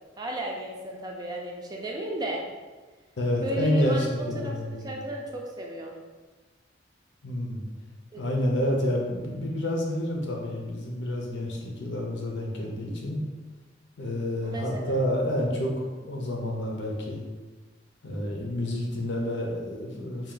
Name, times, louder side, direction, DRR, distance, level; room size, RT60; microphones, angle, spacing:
voice 1, 0.2-2.4 3.4-4.0 4.3-4.5 4.8-6.0 8.1-8.3 14.4-15.0, right 1 dB, 20° right, -1 dB, 0.5 m, -34 dB
voice 2, 3.2-5.0 7.2-7.6 8.2-13.2 14.0-17.2 18.0-20.3, left 1 dB, 80° left, -1 dB, 0.8 m, -29 dB
3.6 x 2.5 x 3.8 m, 1.3 s
head